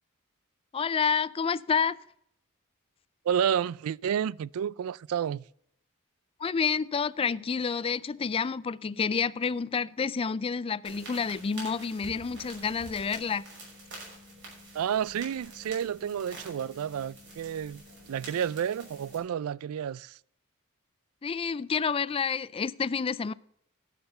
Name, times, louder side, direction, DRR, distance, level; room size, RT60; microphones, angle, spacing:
voice 1, 0.7-2.0 6.4-13.4 21.2-23.3, left 6 dB, 25° left, 0.4 m, -29 dB
voice 2, 3.2-5.4 14.7-17.8 18.1-20.2, right 8 dB, 80° right, 0.3 m, -30 dB
sound 1, 10.8-19.2, right 1 dB, 55° right, 6.1 m, -47 dB
12.0 x 6.7 x 6.7 m
head